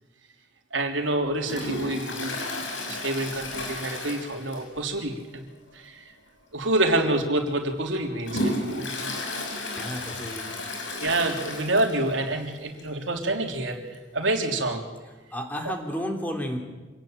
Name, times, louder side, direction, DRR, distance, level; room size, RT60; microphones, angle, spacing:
voice 1, 0.7-2.5 2.8-5.4 5.7-6.0 6.5-9.1 10.9-13.8 14.1-14.8, right 2 dB, 85° right, 2 dB, 3.5 m, -27 dB
Toilet flush, 1.4-4.9 5.2-5.3 5.7-5.8 6.6-6.7 7.3-12.2 12.5-12.6 12.8-12.9 13.9-14.0, left 1 dB, 90° left, 6.4 m, -33 dB
voice 2, 9.8-10.5 15.3-16.6, equal, 10° left, 3 dB, 3.5 m, -32 dB
26.5 x 18.0 x 9.0 m, 1.2 s
head